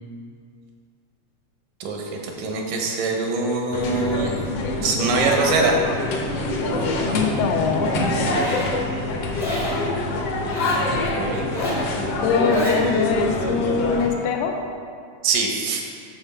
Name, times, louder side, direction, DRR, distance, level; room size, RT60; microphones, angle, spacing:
voice 1, 1.8-4.3 4.8-5.8 10.8-11.5 15.2-15.8, right 4 dB, 85° right, 1 dB, 2.6 m, -23 dB
sound 1, 3.7-14.1, left 2 dB, 70° left, 1.5 m, -25 dB
voice 2, 7.0-7.9 11.6-11.8 12.2-14.6, left 5 dB, 85° left, 3 dB, 2.2 m, -23 dB
Zipper (clothing), 8.1-8.7 9.3-9.8 10.4-10.9 11.4-11.9 12.3-12.8, left 1 dB, 25° left, 0.5 m, -30 dB
7.8 x 6.6 x 4.5 m, 2.2 s
omnidirectional pair, 3.7 m